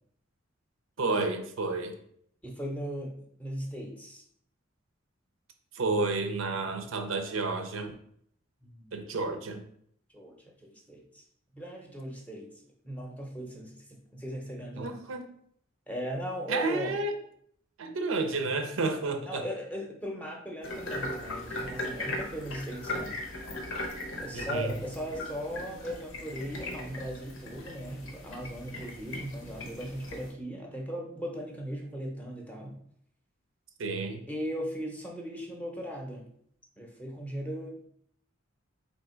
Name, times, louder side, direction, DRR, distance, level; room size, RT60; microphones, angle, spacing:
voice 1, 1.0-2.0 5.8-7.9 8.9-9.6 14.8-15.2 16.5-17.1 17.8-19.4 24.3-24.7 33.8-34.2, right 3 dB, 75° right, 6 dB, 0.5 m, -31 dB
voice 2, 2.4-4.2 8.6-9.0 10.1-11.2 11.5-15.0 15.9-17.0 19.3-23.2 24.2-32.8 34.3-36.3 36.8-37.9, equal, 5° left, 0 dB, 0.7 m, -38 dB
sound 1, 20.6-30.3, left 1 dB, 80° left, 0.9 m, -38 dB
3.4 x 2.8 x 4.3 m, 0.67 s
head